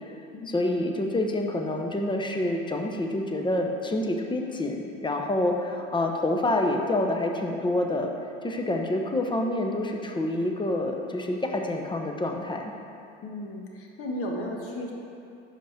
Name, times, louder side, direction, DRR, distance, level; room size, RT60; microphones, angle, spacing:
voice 1, 0.5-8.1 8.4-12.6, left 1 dB, 15° left, 2 dB, 0.8 m, -27 dB
voice 2, 13.2-14.9, left 1 dB, 45° left, -1 dB, 1.4 m, -34 dB
5.2 x 5.1 x 5.8 m, 2.5 s
hypercardioid pair, 80°, 31 cm